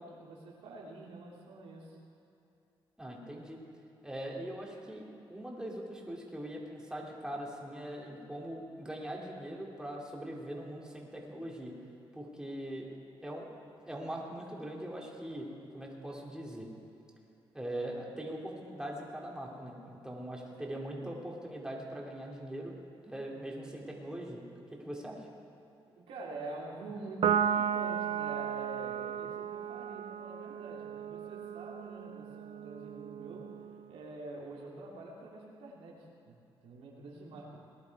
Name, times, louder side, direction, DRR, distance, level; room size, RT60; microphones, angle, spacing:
voice 1, 0.0-2.0 20.5-21.1 25.8-33.5 33.9-36.0 36.2-36.3 36.6-37.6, right 2 dB, 90° right, -3 dB, 2.9 m, -46 dB
voice 2, 3.0-3.6 4.0-11.7 12.1-12.9 13.2-13.5 13.9-15.5 15.7-16.7 17.5-22.7 23.0-24.4 24.8-25.3, right 1 dB, 5° right, -2 dB, 2.8 m, -41 dB
Piano, 27.2-33.9, right 8 dB, 70° right, 0.6 m, -34 dB
19.5 x 11.0 x 4.8 m, 2.8 s
cardioid pair, 80°, 10 cm